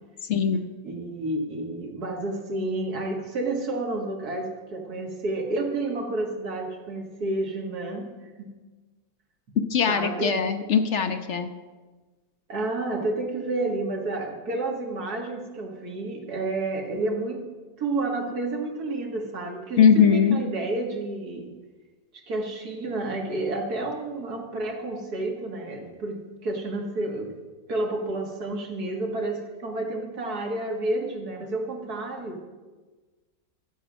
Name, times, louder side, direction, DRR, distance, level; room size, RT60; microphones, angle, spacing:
voice 1, 0.3-0.7 9.7-11.5 19.8-20.4, left 7 dB, 60° left, 8 dB, 0.9 m, -20 dB
voice 2, 0.8-8.1 8.4-8.5 9.9-10.3 12.5-17.4 17.8-21.5 22.1-27.3 27.7-32.4, right 2 dB, 85° right, 1 dB, 2.3 m, -30 dB
12.5 x 8.3 x 6.1 m, 1.3 s
omnidirectional pair, 1.6 m